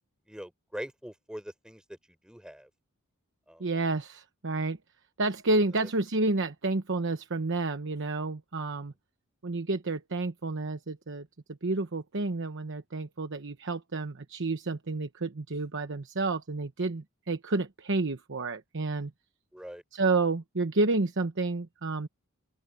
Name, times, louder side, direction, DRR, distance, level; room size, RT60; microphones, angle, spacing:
voice 1, 0.3-2.0 2.2-2.7 3.5-3.7 5.8-5.9 19.5-19.8, equal, 5° right, 4.0 m, -42 dB
voice 2, 3.6-4.8 5.2-8.9 9.4-11.3 11.6-19.1 19.9-22.1, right 3 dB, 55° right, 1.0 m, -30 dB
open air
head